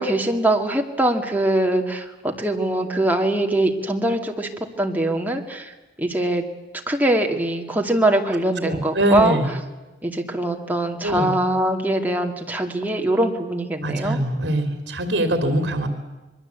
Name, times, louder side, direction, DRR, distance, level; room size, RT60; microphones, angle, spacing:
voice 1, 0.0-6.4 6.9-9.4 10.0-14.2, right 1 dB, 10° right, 2 dB, 2.2 m, -22 dB
voice 2, 8.6-9.5 11.0-11.3 13.8-15.9, right 1 dB, 70° right, 6 dB, 2.9 m, -23 dB
26.0 x 22.0 x 8.3 m, 1.1 s
head